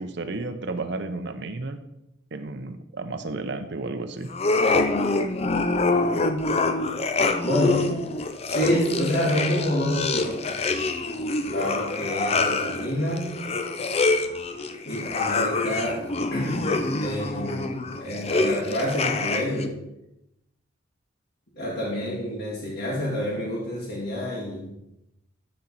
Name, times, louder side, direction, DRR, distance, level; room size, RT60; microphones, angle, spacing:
voice 1, 0.0-1.8 2.3-4.3, right 3 dB, 60° right, 8 dB, 0.7 m, -32 dB
sound 1, 4.3-19.7, left 3 dB, 30° left, 0.5 m, -26 dB
voice 2, 7.4-8.0 8.4-10.5 11.5-13.4 14.8-19.8 21.5-24.7, equal, 55° left, -10 dB, 2.2 m, -28 dB
12.0 x 4.3 x 4.1 m, 0.87 s
head